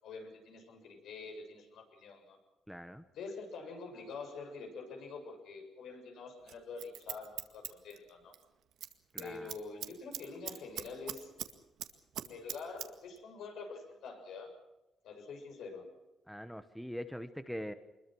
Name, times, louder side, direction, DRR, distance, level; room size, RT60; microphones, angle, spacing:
voice 1, 0.0-2.4 3.1-8.3 9.2-11.4 12.2-14.5 15.0-15.9, left 4 dB, 75° left, 4 dB, 6.9 m, -46 dB
voice 2, 2.7-3.0 9.1-9.5 16.3-17.7, equal, ahead, 10 dB, 1.1 m, -42 dB
Scissors, 6.5-8.4 8.7-8.9 9.2-11.5 11.8-12.9 13.2-13.3, right 11 dB, 85° right, 2.0 m, -41 dB
25.0 x 22.0 x 6.2 m, 1.0 s
cardioid pair, 150°, 0 cm